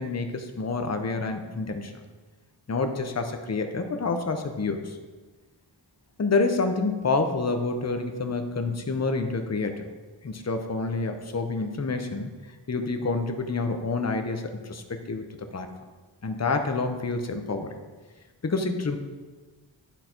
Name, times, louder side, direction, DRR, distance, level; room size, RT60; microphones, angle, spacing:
voice 1, 0.0-2.0 2.7-5.0 6.2-9.9 10.2-12.3 12.7-15.7 16.2-17.8 18.4-19.0, left 3 dB, 35° left, 6 dB, 0.7 m, -28 dB
10.0 x 4.0 x 4.4 m, 1.3 s
wide cardioid pair, 60°, 49 cm